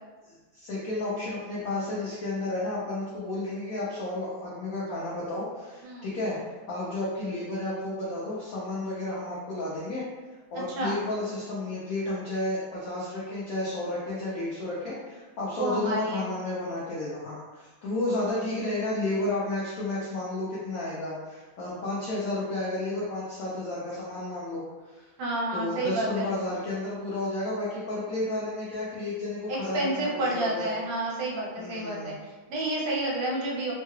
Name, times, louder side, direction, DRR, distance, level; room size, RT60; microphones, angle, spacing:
voice 1, 0.3-10.0 10.5-25.1 25.5-30.6 31.6-32.2, left 2 dB, 75° left, -7 dB, 0.8 m, -32 dB
voice 2, 15.5-16.3 25.2-26.3 29.5-33.7, right 1 dB, 75° right, -4 dB, 1.6 m, -30 dB
3.6 x 2.3 x 3.1 m, 1.3 s
omnidirectional pair, 2.3 m